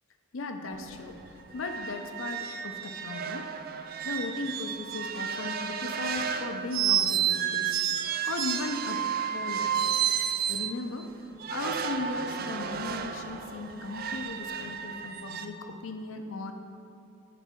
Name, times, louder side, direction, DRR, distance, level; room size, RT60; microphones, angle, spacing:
voice 1, 0.3-1.2 1.5-3.5 4.0-9.9 10.4-11.1 11.5-16.5, left 3 dB, 70° left, 5 dB, 0.6 m, -37 dB
sound 1, 0.7-0.9 1.2-1.3 1.6-10.8 11.4-15.5, right 9 dB, 45° right, 0.4 m, -31 dB
11.0 x 4.6 x 4.4 m, 2.7 s
head